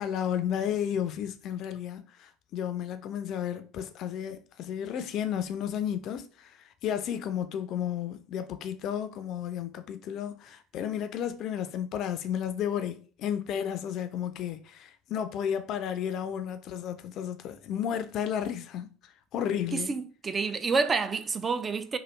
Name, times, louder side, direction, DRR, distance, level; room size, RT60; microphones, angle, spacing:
voice 1, 0.0-6.5 6.8-18.9 19.3-19.9, left 9 dB, 50° left, 0.4 m, -32 dB
voice 2, 19.7-22.0, right 4 dB, 25° right, 0.3 m, -28 dB
3.2 x 2.2 x 3.0 m
figure-of-eight pair, 70°, 0 cm